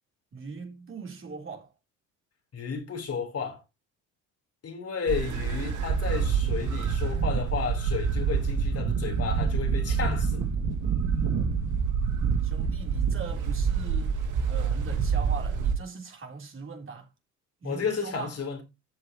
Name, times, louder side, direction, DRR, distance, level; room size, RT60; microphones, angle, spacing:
voice 1, 0.3-1.7 12.4-17.1 17.6-18.4, right 4 dB, 35° right, 3.6 m, -40 dB
voice 2, 2.5-3.6 4.6-10.5 17.6-18.6, left 6 dB, 40° left, 3.8 m, -32 dB
sound 1, 5.1-15.7, right 6 dB, 55° right, 2.4 m, -27 dB
13.5 x 6.9 x 3.0 m
supercardioid pair, 90°, 36 cm